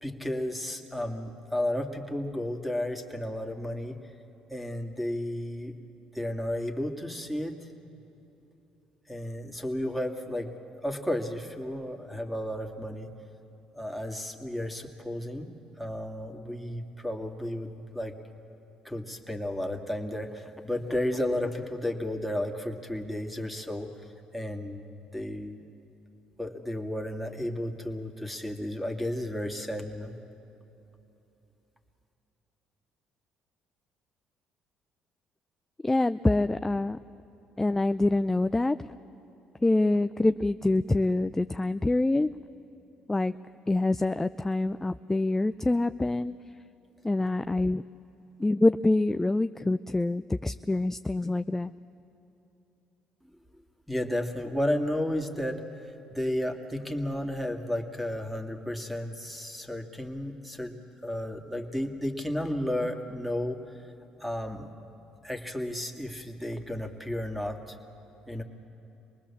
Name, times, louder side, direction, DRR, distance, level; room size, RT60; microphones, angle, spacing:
voice 1, 0.0-4.0 4.5-5.7 6.1-7.6 9.1-10.5 10.8-13.1 13.7-15.5 15.8-18.1 18.8-23.9 24.3-24.9 25.1-25.6 26.4-30.1 53.9-55.6 56.1-60.8 61.0-63.8 64.2-64.7 65.2-67.8 68.3-68.4, left 1 dB, ahead, 4 dB, 2.2 m, -33 dB
voice 2, 35.8-37.0 37.6-38.8 39.6-42.3 43.1-43.3 43.7-46.3 47.0-47.8 48.4-51.7, left 2 dB, 15° left, 11 dB, 0.4 m, -25 dB
26.0 x 20.0 x 7.2 m, 2.9 s
supercardioid pair, 65°, 3 cm